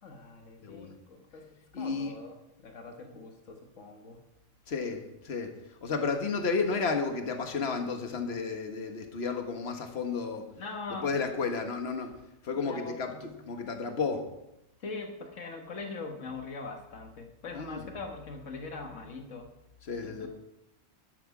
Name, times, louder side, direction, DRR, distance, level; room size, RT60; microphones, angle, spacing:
voice 1, 0.0-4.2 10.6-11.3 12.5-13.2 14.8-19.5 20.0-20.3, left 3 dB, 85° left, 3 dB, 1.8 m, -42 dB
voice 2, 0.6-1.0 1.7-2.1 4.7-5.5 5.8-10.5 11.0-12.1 12.4-14.3 17.5-17.8 19.8-20.3, left 4 dB, 55° left, 5 dB, 1.6 m, -32 dB
12.0 x 11.5 x 4.8 m, 0.89 s
omnidirectional pair, 1.3 m